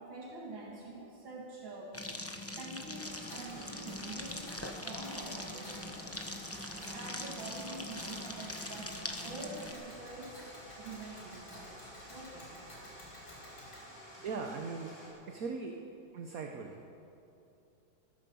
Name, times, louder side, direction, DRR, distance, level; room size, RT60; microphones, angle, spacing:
voice 1, 0.0-10.4 10.8-12.8, right 2 dB, 75° right, -3 dB, 2.6 m, -46 dB
sound 1, 1.9-9.7, left 1 dB, 15° left, 0.4 m, -42 dB
sound 2, 2.9-15.1, equal, 60° left, 5.6 m, -51 dB
Tick, 3.3-13.9, left 1 dB, 85° left, 5.0 m, -54 dB
voice 2, 14.2-14.9 15.3-15.8 16.1-16.8, right 4 dB, 55° right, 3 dB, 1.2 m, -39 dB
14.5 x 14.0 x 7.0 m, 2.7 s
omnidirectional pair, 2.2 m